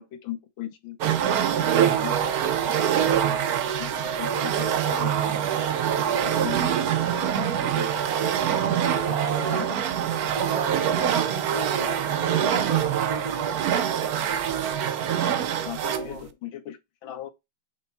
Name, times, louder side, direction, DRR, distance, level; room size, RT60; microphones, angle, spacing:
voice 1, 0.0-1.4 1.8-3.3 3.8-5.5 6.0-6.7 7.0-9.8 13.1-13.2 14.9-15.1 15.7-17.3, left 12 dB, 70° left, 1.8 m, -39 dB
sound 1, 1.0-16.1, right 9 dB, 60° right, 1.0 m, -24 dB
voice 2, 9.0-9.6 10.3-13.6 16.0-16.3, right 3 dB, 20° right, 1.6 m, -35 dB
6.7 x 3.5 x 4.1 m
omnidirectional pair, 2.2 m